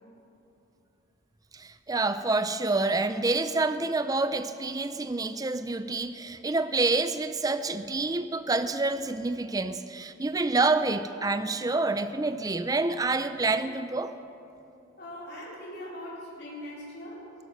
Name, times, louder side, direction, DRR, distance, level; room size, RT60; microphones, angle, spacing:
voice 1, 1.5-14.1, right 3 dB, 15° right, 11 dB, 0.4 m, -27 dB
voice 2, 15.0-17.2, left 1 dB, 50° left, -7 dB, 4.2 m, -41 dB
17.5 x 11.0 x 6.7 m, 2.8 s
head